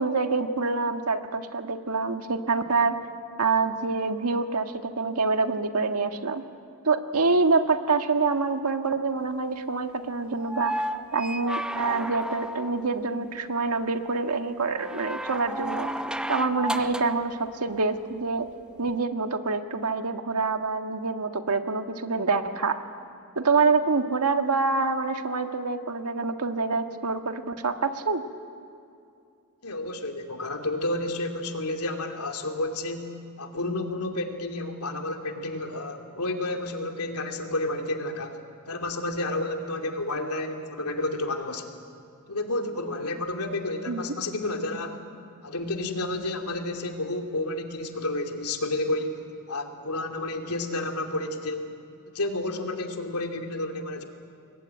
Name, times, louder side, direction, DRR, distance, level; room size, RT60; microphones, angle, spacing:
voice 1, 0.0-3.0 3.4-6.4 6.8-10.7 11.1-15.9 16.3-18.5 18.8-22.8 23.3-28.2 43.9-44.0, right 4 dB, 85° right, 6 dB, 1.6 m, -26 dB
sound 1, 10.4-12.9 14.7-17.2 18.9-19.0, right 1 dB, 5° right, 0.7 m, -32 dB
voice 2, 29.6-33.1 33.4-38.4 38.7-41.7 42.3-45.0 45.4-49.2 49.5-51.7 52.1-54.0, left 2 dB, 90° left, 4 dB, 2.8 m, -30 dB
29.5 x 22.0 x 8.9 m, 2.5 s
head